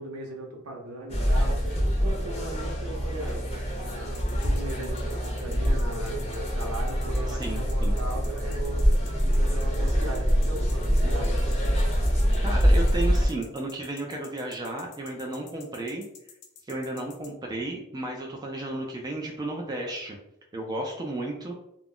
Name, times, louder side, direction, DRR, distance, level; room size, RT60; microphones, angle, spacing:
voice 1, 0.0-3.4 4.0-11.8, right 2 dB, 80° right, 1 dB, 0.7 m, -38 dB
sound 1, 1.1-13.3, equal, 30° left, 0.6 m, -25 dB
sound 2, 4.1-17.3, left 6 dB, 80° left, 0.5 m, -49 dB
voice 2, 7.3-8.0 11.0-11.1 12.4-16.0 16.7-20.2 20.5-21.5, right 2 dB, 20° right, -1 dB, 0.4 m, -33 dB
2.3 x 2.0 x 3.6 m, 0.81 s
head